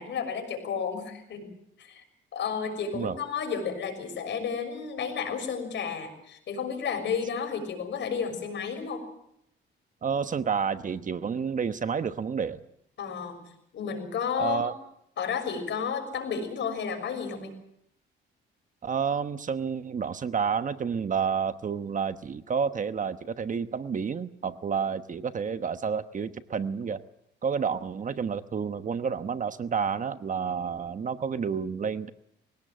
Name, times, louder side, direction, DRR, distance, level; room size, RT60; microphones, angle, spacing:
voice 1, 0.0-1.5 1.8-2.0 2.3-9.0 13.0-13.4 13.7-14.7 15.2-17.5, left 6 dB, 65° left, 5 dB, 6.5 m, -32 dB
voice 2, 10.0-12.6 14.4-14.7 18.8-27.0 27.4-32.1, right 6 dB, 40° right, 11 dB, 1.1 m, -30 dB
22.5 x 17.5 x 7.6 m, 0.75 s
cardioid pair, 90°, 20 cm